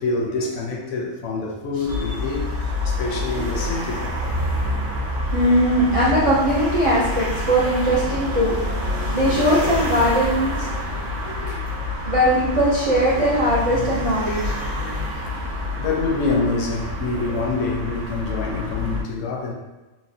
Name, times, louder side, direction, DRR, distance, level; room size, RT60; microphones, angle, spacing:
voice 1, 0.0-4.1 5.9-6.1 8.3-8.4 8.9-9.2 10.8-11.9 14.8-15.4 15.8-19.5, left 3 dB, 75° left, 1 dB, 0.9 m, -27 dB
sound 1, 1.9-19.0, left 1 dB, 80° right, 1.9 m, -27 dB
voice 2, 5.3-8.6 9.1-10.7 12.0-14.6, equal, 50° right, -7 dB, 0.4 m, -20 dB
4.1 x 2.2 x 2.6 m, 1.1 s
omnidirectional pair, 1.3 m